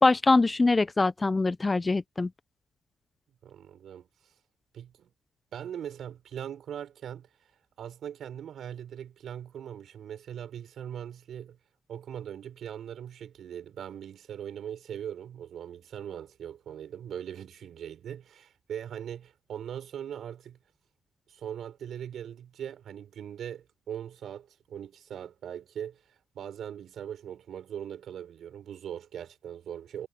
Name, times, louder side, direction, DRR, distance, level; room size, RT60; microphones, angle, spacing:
voice 1, 0.0-2.3, left 3 dB, 20° left, 0.7 m, -23 dB
voice 2, 3.4-4.1 4.7-5.1 5.5-7.3 7.8-11.6 11.9-20.6 21.3-26.0 26.3-30.1, right 9 dB, 65° right, 4.7 m, -40 dB
cardioid pair, 90°, 0 cm